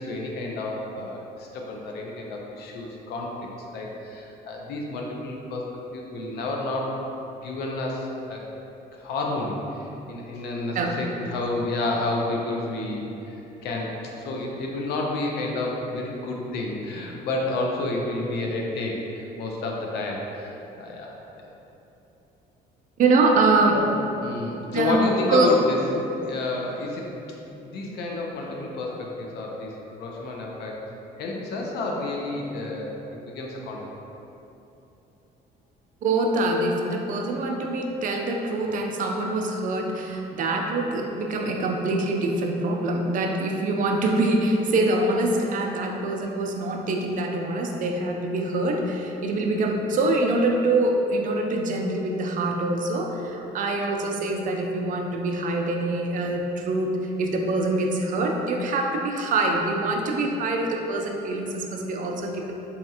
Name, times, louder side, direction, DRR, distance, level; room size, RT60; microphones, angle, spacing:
voice 1, 0.0-5.7 5.9-7.0 7.4-8.4 8.9-21.5 23.7-23.9 24.2-27.1 27.5-30.8 31.2-33.8, left 2 dB, 75° left, -1 dB, 0.5 m, -30 dB
voice 2, 23.0-23.8 24.7-25.0 25.3-25.5 36.0-62.5, right 2 dB, 50° right, 2 dB, 0.4 m, -24 dB
4.0 x 2.4 x 2.7 m, 3.0 s
cardioid pair, 110°, 17 cm